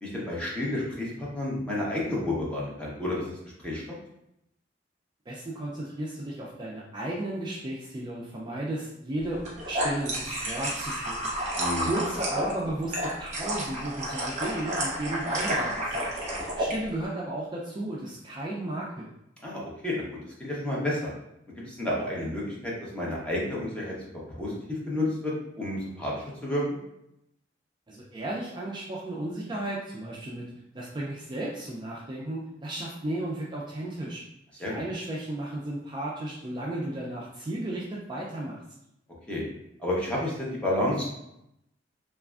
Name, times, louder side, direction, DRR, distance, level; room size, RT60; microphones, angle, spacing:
voice 1, 0.0-3.8 11.6-11.9 19.4-21.1 21.6-24.0 24.3-26.6 34.6-34.8 39.3-39.4 39.8-41.0, left 1 dB, 5° left, -5 dB, 0.7 m, -31 dB
voice 2, 5.3-9.4 9.7-11.3 11.9-16.1 16.6-19.1 27.9-30.5 30.7-34.2 34.6-38.6, right 1 dB, 25° right, -4 dB, 0.3 m, -34 dB
sound 1, 9.3-16.8, right 1 dB, 40° right, 0.8 m, -30 dB
3.2 x 2.4 x 2.3 m, 0.82 s
head